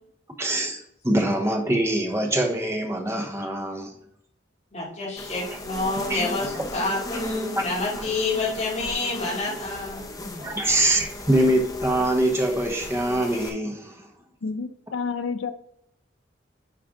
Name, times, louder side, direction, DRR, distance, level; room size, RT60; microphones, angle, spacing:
voice 1, 0.4-3.9 6.1-6.2 7.6-7.7 8.0-8.1 10.4-14.1, right 1 dB, 15° right, 1.0 m, -24 dB
voice 2, 4.7-10.1 10.4-10.5, left 3 dB, 35° left, 2.7 m, -28 dB
sound 1, 5.2-13.5, left 1 dB, 20° left, 0.9 m, -36 dB
voice 3, 14.4-15.5, left 5 dB, 85° left, 0.6 m, -29 dB
9.9 x 4.3 x 3.8 m
head